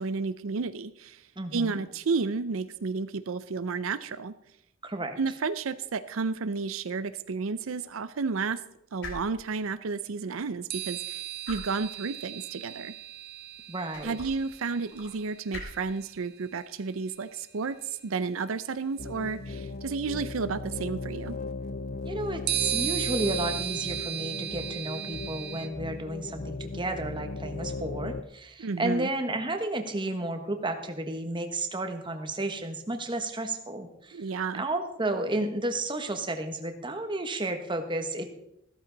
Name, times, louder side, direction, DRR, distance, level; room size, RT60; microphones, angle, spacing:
voice 1, 0.0-4.4 5.2-8.6 8.9-13.0 14.0-21.4 28.6-29.1 34.1-34.6, right 4 dB, 85° right, 12 dB, 0.5 m, -32 dB
voice 2, 1.4-1.8 4.8-5.2 13.7-14.2 22.0-34.2 34.5-38.3, right 2 dB, 25° right, 6 dB, 1.3 m, -32 dB
sound 1, 6.0-19.6, left 2 dB, 60° left, 3.5 m, -49 dB
sound 2, 10.7-16.3 17.6-17.7 22.5-25.7, right 12 dB, 50° right, 1.0 m, -35 dB
sound 3, 19.0-28.2, left 3 dB, 45° left, 0.5 m, -37 dB
14.5 x 13.0 x 4.0 m, 0.81 s
head